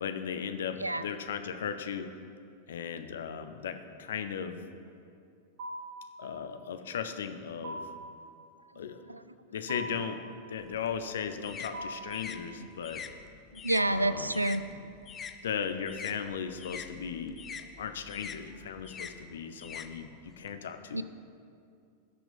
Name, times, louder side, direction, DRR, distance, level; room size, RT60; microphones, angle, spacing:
voice 1, 0.0-2.1 2.7-4.6 6.2-7.8 8.8-9.0 9.5-10.2 10.5-13.0 13.9-14.4 15.4-17.4 17.8-21.0, left 7 dB, 60° left, 8 dB, 0.7 m, -36 dB
sound 1, 5.6-6.1 7.6-8.1 9.7-10.2 11.7-12.2 13.8-14.3, right 1 dB, 50° right, 1.5 m, -40 dB
voice 2, 8.7-9.3 13.5-14.6 20.9-21.0, right 1 dB, 85° right, 13 dB, 0.3 m, -30 dB
sound 2, 10.6-15.4 15.7-20.5, left 7 dB, 25° left, 0.5 m, -44 dB
17.0 x 6.0 x 3.5 m, 2.4 s
figure-of-eight pair, 90°, 0 cm